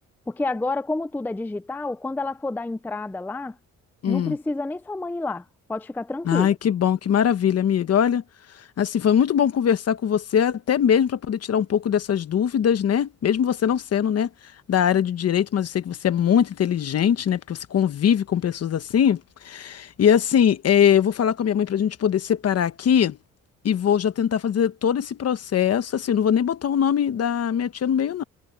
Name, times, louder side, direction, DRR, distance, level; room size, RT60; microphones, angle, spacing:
voice 1, 0.3-3.6 4.1-5.4 5.7-6.5, left 2 dB, 5° left, 0.4 m, -29 dB
voice 2, 4.0-4.3 6.2-8.2 8.8-14.3 14.7-23.2 23.6-28.2, left 8 dB, 55° left, 1.2 m, -21 dB
cardioid pair, 125°, 30 cm